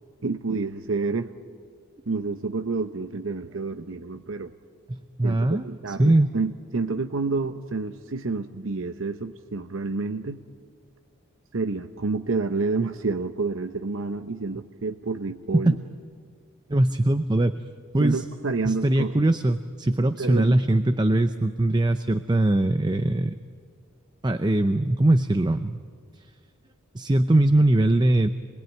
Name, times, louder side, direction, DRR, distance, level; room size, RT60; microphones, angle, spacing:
voice 1, 0.2-1.3 2.1-4.5 5.2-10.4 11.5-15.8 18.0-19.2 20.2-20.6, right 3 dB, 65° right, 8 dB, 0.8 m, -29 dB
voice 2, 4.9-6.3 15.5-15.8 16.7-17.6 17.9-18.2 18.6-23.4 24.2-25.8 26.9-28.3, right 1 dB, 20° right, 10 dB, 0.6 m, -21 dB
27.0 x 21.0 x 9.1 m, 2.1 s
head